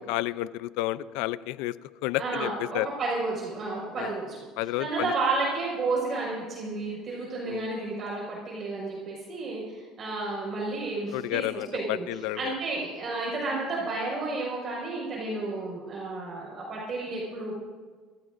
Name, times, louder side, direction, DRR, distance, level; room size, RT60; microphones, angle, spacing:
voice 1, 0.0-1.7 2.0-2.9 4.0-4.1 4.6-5.1 7.5-7.7 11.1-12.5, left 16 dB, 80° left, 16 dB, 0.5 m, -31 dB
voice 2, 2.2-4.4 4.8-11.4 11.7-12.0 12.3-17.6, right 3 dB, 40° right, -3 dB, 5.2 m, -31 dB
26.5 x 15.0 x 2.6 m, 1.5 s
supercardioid pair, 110°, 0 cm